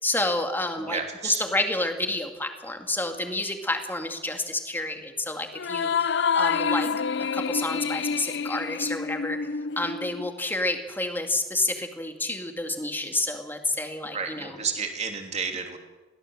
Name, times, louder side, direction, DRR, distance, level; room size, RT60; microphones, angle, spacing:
voice 1, 0.0-5.9 6.4-6.9 7.2-9.4 9.8-14.6, left 2 dB, 10° left, 5 dB, 2.2 m, -29 dB
voice 2, 0.8-1.5 14.1-15.8, right 5 dB, 40° right, 4 dB, 3.1 m, -31 dB
sound 1, 5.5-10.3, left 6 dB, 70° left, 0.6 m, -27 dB
22.0 x 16.5 x 7.7 m, 1.2 s
head